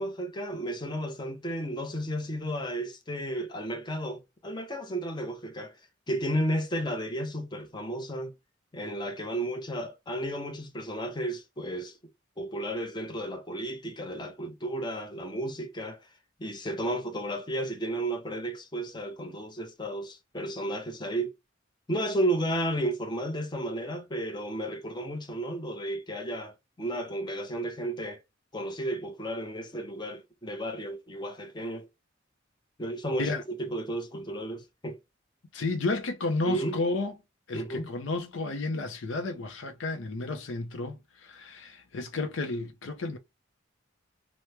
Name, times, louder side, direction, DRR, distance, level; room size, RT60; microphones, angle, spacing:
voice 1, 0.0-5.7 6.1-8.3 8.7-12.0 12.4-16.0 16.4-21.4 21.9-28.2 28.5-31.9 32.8-35.0 36.4-36.8 37.5-37.9, right 1 dB, 25° left, 0.6 m, -33 dB
voice 2, 35.5-37.1 37.5-43.2, left 3 dB, 75° left, 0.6 m, -32 dB
3.0 x 2.1 x 3.3 m
head